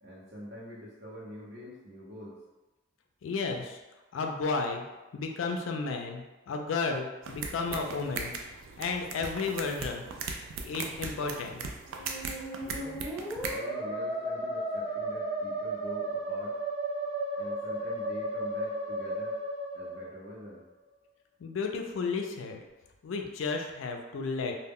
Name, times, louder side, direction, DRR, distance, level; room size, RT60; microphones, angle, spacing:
voice 1, 0.0-2.4 12.6-13.0 13.5-16.6 17.4-19.4 19.7-20.6, equal, 55° right, -5 dB, 0.8 m, -45 dB
voice 2, 3.2-3.8 4.1-4.8 5.1-8.3 8.8-10.0 10.6-11.6 21.4-22.6 23.0-24.5, left 4 dB, 80° left, 3 dB, 0.4 m, -33 dB
sound 1, 7.2-13.6, right 4 dB, 80° right, 0.3 m, -39 dB
Musical instrument, 11.8-20.6, right 1 dB, 10° right, 0.7 m, -34 dB
2.1 x 2.1 x 3.5 m, 1.1 s
head